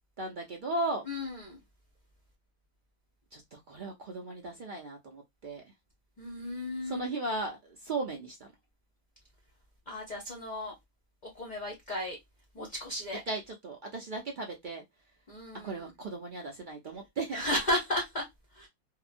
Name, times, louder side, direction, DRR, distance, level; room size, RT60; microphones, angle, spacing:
voice 1, 0.2-1.0 3.3-5.6 6.8-8.5 13.3-14.8 15.6-17.4, right 2 dB, 60° right, 0.5 m, -36 dB
voice 2, 1.1-1.6 6.2-7.1 9.9-10.7 11.2-12.2 12.5-13.2 15.3-15.9 17.3-18.2 18.5-18.7, left 1 dB, 40° left, 0.7 m, -34 dB
2.8 x 2.2 x 2.4 m
omnidirectional pair, 1.4 m